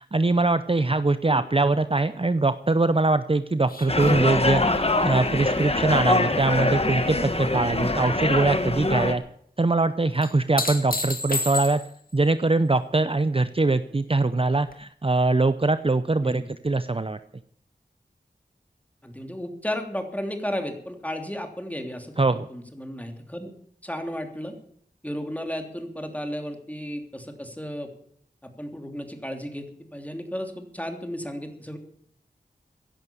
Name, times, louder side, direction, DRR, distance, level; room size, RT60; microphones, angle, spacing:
voice 1, 0.0-9.2 9.6-11.8 12.1-17.2 22.2-22.5, right 3 dB, 35° right, 12 dB, 0.7 m, -22 dB
sound 1, 3.7-7.2 7.5-8.1 10.2-12.1 14.7-14.8, left 3 dB, 55° left, 2.2 m, -33 dB
sound 2, 3.9-9.1, left 2 dB, 35° left, 1.6 m, -24 dB
voice 2, 19.0-23.5 23.8-24.6 25.0-27.9 28.4-31.8, equal, 10° left, 5 dB, 3.0 m, -34 dB
16.0 x 10.5 x 7.0 m, 0.65 s
wide cardioid pair, 45°, 17 cm